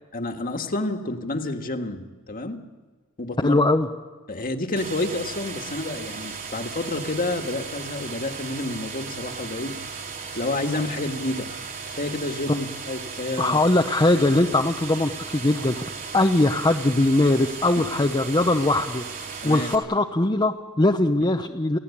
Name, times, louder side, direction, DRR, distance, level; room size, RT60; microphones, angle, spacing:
voice 1, 0.1-2.6 3.2-3.6 4.3-9.7 10.3-11.5 11.9-13.6 17.8-17.9 19.4-19.7, left 2 dB, 40° left, 5 dB, 1.8 m, -29 dB
voice 2, 3.4-3.9 13.4-19.0 19.4-21.8, left 2 dB, 20° left, 3 dB, 0.8 m, -21 dB
sound 1, 4.8-19.8, right 5 dB, 40° right, 3.8 m, -36 dB
29.0 x 16.5 x 8.6 m, 1.4 s
head